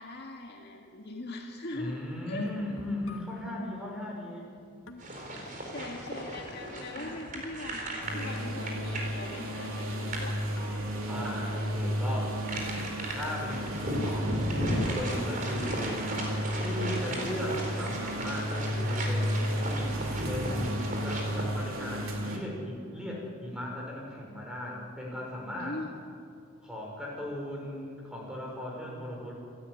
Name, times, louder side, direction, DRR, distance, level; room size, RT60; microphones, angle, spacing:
voice 1, 0.0-2.0 2.3-2.5 5.7-10.3 25.6-25.9, left 2 dB, 50° left, 1 dB, 2.1 m, -41 dB
voice 2, 1.7-4.5 11.1-12.4 13.1-14.4 14.7-16.0 16.6-20.0 20.3-25.8 26.6-29.3, left 1 dB, 5° right, -2 dB, 6.0 m, -37 dB
sound 1, 2.4-3.6 4.6-4.7 4.9-7.6 8.2-8.5 8.8-9.8 10.3-11.3, left 2 dB, 75° left, 1.9 m, -51 dB
sound 2, 5.0-21.4, right 1 dB, 40° right, 4.3 m, -37 dB
sound 3, 8.0-22.4, equal, 90° right, 3.6 m, -33 dB
28.0 x 13.5 x 9.8 m, 2.3 s
head